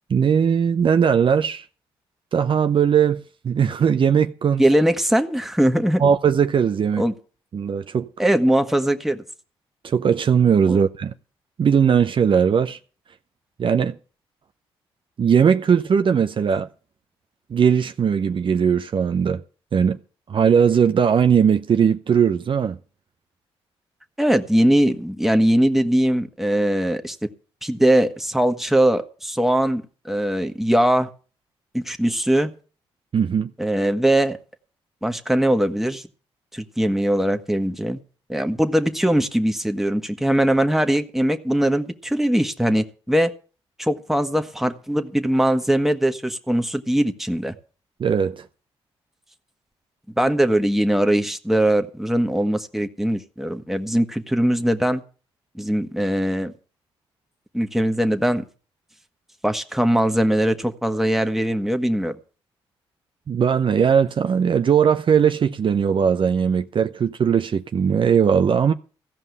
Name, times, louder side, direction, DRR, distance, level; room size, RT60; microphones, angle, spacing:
voice 1, 0.1-1.6 2.3-4.6 6.0-7.0 7.5-8.1 9.8-11.1 11.6-12.8 13.6-14.0 15.2-16.7 17.5-19.4 19.7-20.0 20.3-22.8 33.1-33.5 48.0-48.4 63.3-68.7, right 7 dB, 50° right, 0.7 m, -19 dB
voice 2, 4.6-6.0 7.0-7.1 8.2-9.2 10.7-10.8 24.2-27.3 27.6-31.1 31.7-32.5 33.6-34.4 35.0-36.1 36.5-38.0 38.3-43.3 43.8-47.5 50.2-55.0 55.5-56.5 57.5-58.4 59.4-62.2, right 1 dB, 5° right, 1.6 m, -21 dB
15.5 x 5.4 x 9.6 m
supercardioid pair, 55°, 11 cm